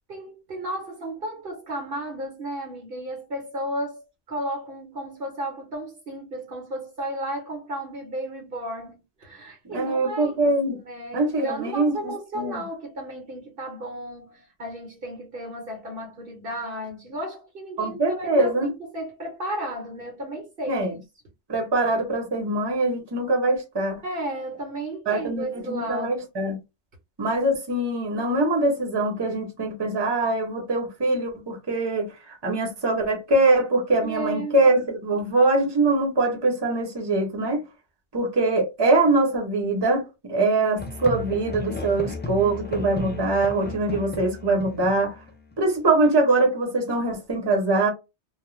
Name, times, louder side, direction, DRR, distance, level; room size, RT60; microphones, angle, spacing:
voice 1, 0.1-21.0 24.0-26.1 34.0-34.6, right 1 dB, 55° right, 0.9 m, -34 dB
voice 2, 9.7-10.8 11.1-12.6 17.8-18.7 20.7-20.9 21.5-24.0 25.1-26.6 27.2-37.6 38.1-45.2 45.6-47.9, right 2 dB, 25° right, 0.8 m, -23 dB
Musical instrument, 40.8-45.6, left 2 dB, 15° left, 0.3 m, -34 dB
2.4 x 2.1 x 3.0 m
omnidirectional pair, 1.2 m